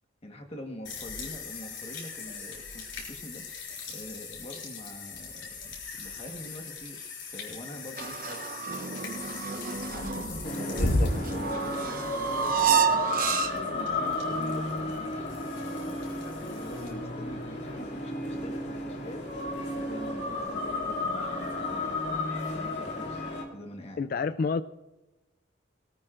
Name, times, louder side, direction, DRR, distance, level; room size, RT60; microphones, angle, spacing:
voice 1, 0.2-7.0 7.3-8.6 9.9-15.3 16.4-19.3 19.7-22.0 22.5-23.3 23.5-24.0, left 1 dB, 30° left, 3 dB, 1.3 m, -45 dB
sound 1, 0.8-16.9, left 2 dB, 85° left, 4.7 m, -37 dB
sound 2, 8.0-13.8, right 8 dB, 45° right, 0.8 m, -30 dB
sound 3, 10.4-23.4, left 2 dB, 65° left, 2.6 m, -33 dB
voice 2, 10.8-11.1 24.0-24.6, left 4 dB, 50° left, 13 dB, 0.3 m, -29 dB
19.0 x 18.0 x 2.5 m, 1.1 s
head